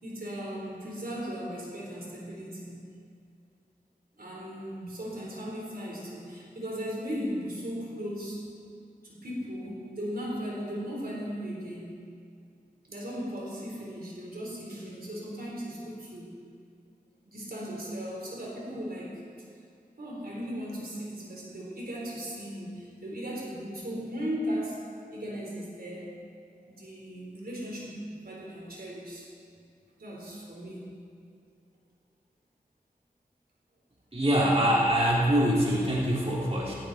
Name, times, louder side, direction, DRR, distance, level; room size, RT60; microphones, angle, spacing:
voice 1, 0.0-2.8 4.2-8.4 9.0-12.0 12.9-16.3 17.2-19.2 20.0-24.8 25.1-26.1 26.7-29.3 30.0-30.9, equal, 85° right, -4 dB, 4.0 m, -37 dB
voice 2, 34.1-36.7, equal, 40° right, -5 dB, 3.0 m, -24 dB
17.0 x 15.5 x 4.2 m, 2.3 s
wide cardioid pair, 70°, 15 cm